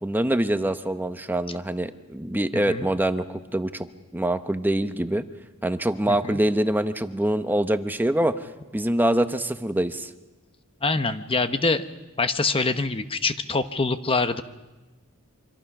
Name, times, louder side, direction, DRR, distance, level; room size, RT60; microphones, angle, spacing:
voice 1, 0.0-3.9 4.1-5.2 5.6-8.3 8.7-10.1, right 1 dB, 10° right, 9 dB, 0.8 m, -24 dB
voice 2, 2.5-2.9 6.1-6.4 10.8-11.9 12.2-14.4, left 3 dB, 25° left, 10 dB, 1.0 m, -25 dB
25.5 x 25.5 x 6.0 m, 1.1 s
head